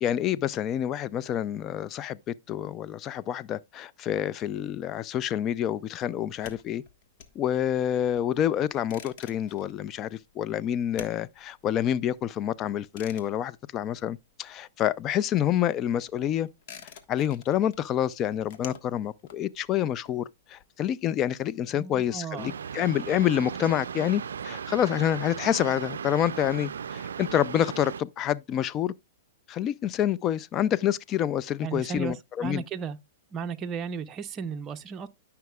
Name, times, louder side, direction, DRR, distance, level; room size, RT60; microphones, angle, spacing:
voice 1, 0.0-6.8 7.4-16.5 17.1-28.9 29.5-32.6, left 10 dB, 30° left, 0.4 m, -28 dB
sound 1, 6.4-14.6 14.9-20.6, left 8 dB, 55° left, 1.4 m, -49 dB
voice 2, 21.7-22.5 31.6-33.0 33.3-35.1, right 6 dB, 25° right, 0.7 m, -35 dB
sound 2, 22.4-28.0, right 7 dB, 85° right, 0.4 m, -36 dB
13.0 x 5.7 x 2.3 m
hypercardioid pair, 125°, 0 cm